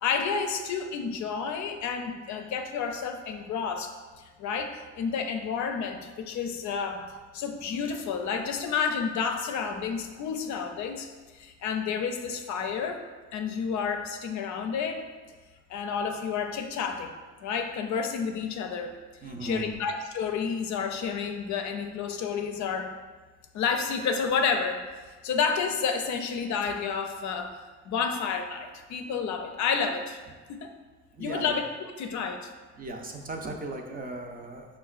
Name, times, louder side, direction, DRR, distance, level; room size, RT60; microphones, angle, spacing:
voice 1, 0.0-3.9 4.2-7.0 7.3-11.1 11.3-13.0 13.3-15.1 15.7-17.1 17.4-18.9 19.4-22.9 23.5-24.9 25.2-27.6 27.9-30.2 30.5-30.7 31.2-31.7 32.0-32.5, left 6 dB, 75° left, 5 dB, 0.4 m, -30 dB
voice 2, 19.2-19.8 31.2-31.6 32.8-34.7, right 2 dB, 30° right, 2 dB, 0.5 m, -37 dB
5.4 x 2.2 x 2.4 m, 1.3 s
cardioid pair, 75°, 29 cm